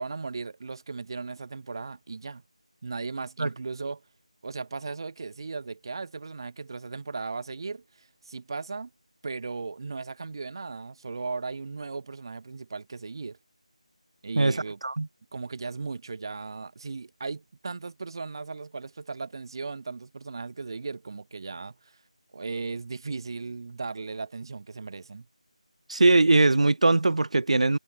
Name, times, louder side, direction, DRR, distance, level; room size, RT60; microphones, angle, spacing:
voice 1, 0.0-2.4 2.8-4.0 4.4-8.9 9.2-13.4 14.2-14.8 15.3-22.0 22.3-25.2, right 4 dB, 40° right, 1.0 m, -37 dB
voice 2, 14.4-15.1 25.9-27.8, right 2 dB, 65° right, 0.6 m, -21 dB
figure-of-eight pair, 170°, 4 cm